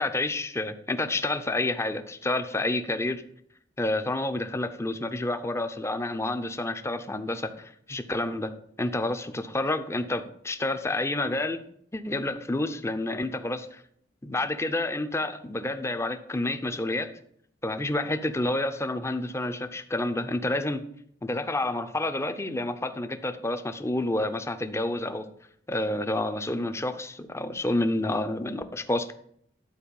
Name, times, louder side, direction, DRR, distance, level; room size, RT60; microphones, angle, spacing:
voice 1, 0.0-3.2 3.8-8.5 8.8-11.6 11.9-13.8 14.2-17.1 17.6-20.8 21.2-25.2 25.7-29.1, left 2 dB, 15° left, 9 dB, 0.6 m, -29 dB
12.0 x 4.5 x 7.0 m, 0.69 s
head